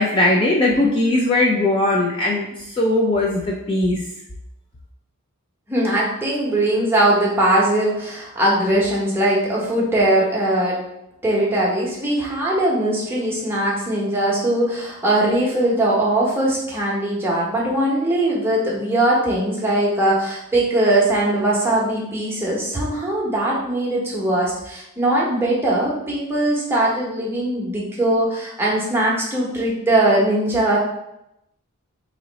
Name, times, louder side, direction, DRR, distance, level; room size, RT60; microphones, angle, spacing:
voice 1, 0.0-2.5 2.8-4.0, left 2 dB, 25° left, -3 dB, 0.3 m, -19 dB
voice 2, 5.7-10.8 11.2-30.8, right 1 dB, 10° right, -5 dB, 0.8 m, -20 dB
2.9 x 2.8 x 3.9 m, 0.84 s
head